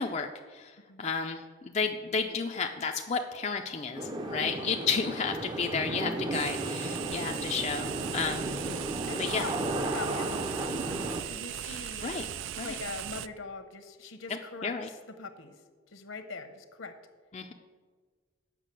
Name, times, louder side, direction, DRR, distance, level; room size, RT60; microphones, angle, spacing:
voice 1, 0.0-8.5 9.1-9.5 11.6-12.2 12.6-12.7 14.6-14.9 17.3-17.5, left 5 dB, 35° left, 3 dB, 0.4 m, -32 dB
sound 1, 3.9-11.2, right 1 dB, 20° right, 0.6 m, -34 dB
sound 2, 6.3-13.3, right 11 dB, 65° right, 0.3 m, -38 dB
voice 2, 9.1-9.6 9.8-12.1 12.6-15.6 15.9-16.9, left 3 dB, 75° left, 8 dB, 1.0 m, -42 dB
8.2 x 6.0 x 7.6 m, 1.5 s
head